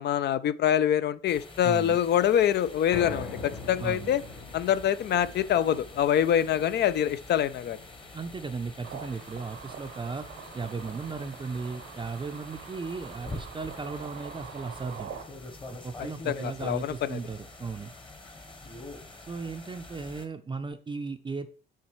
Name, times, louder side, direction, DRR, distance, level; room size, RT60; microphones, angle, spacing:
voice 1, 0.0-4.2 4.5-7.8 16.3-17.2, left 10 dB, 60° left, 0.4 m, -25 dB
sound 1, 1.3-20.3, left 2 dB, 25° left, 1.1 m, -46 dB
voice 2, 1.6-2.0 3.8-4.2 8.1-10.3 10.5-15.1 15.8-17.9 19.2-21.5, right 4 dB, 25° right, 0.5 m, -36 dB
sound 2, 2.9-15.2 15.6-15.7 16.1-16.2, left 4 dB, 85° left, 1.4 m, -46 dB
sound 3, 8.8-15.2, right 7 dB, 75° right, 0.8 m, -44 dB
7.1 x 4.4 x 3.1 m
cardioid pair, 90°, 20 cm